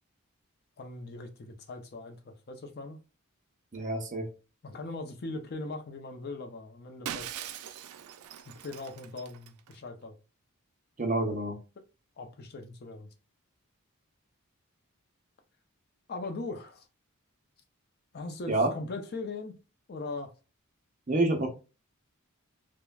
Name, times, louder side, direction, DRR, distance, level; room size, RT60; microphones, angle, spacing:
voice 1, 0.8-3.0 4.6-7.5 8.6-10.1 12.2-13.1 16.1-16.9 18.1-19.6 19.9-20.3, left 3 dB, 50° left, 0.5 m, -40 dB
voice 2, 3.7-4.3 11.0-11.6 18.5-18.7 21.1-21.5, right 2 dB, 35° right, 0.6 m, -27 dB
Shatter, 7.1-9.7, right 10 dB, 90° right, 0.3 m, -41 dB
3.1 x 2.1 x 2.3 m
head